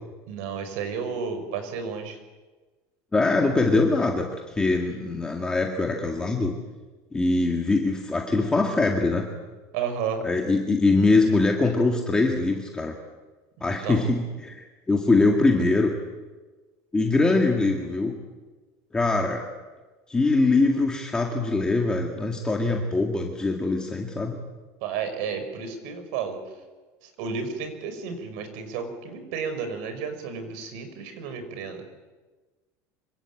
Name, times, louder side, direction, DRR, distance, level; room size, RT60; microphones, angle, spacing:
voice 1, 0.3-2.2 9.7-10.2 13.6-14.0 24.8-26.4 27.2-31.8, right 6 dB, 65° right, 8 dB, 5.5 m, -32 dB
voice 2, 3.1-4.3 4.6-6.5 7.1-9.3 10.2-12.9 13.6-15.9 16.9-18.2 18.9-19.4 20.1-24.4, left 3 dB, 10° left, 1 dB, 2.0 m, -23 dB
26.0 x 24.5 x 8.6 m, 1.3 s
cardioid pair, 175°, 8 cm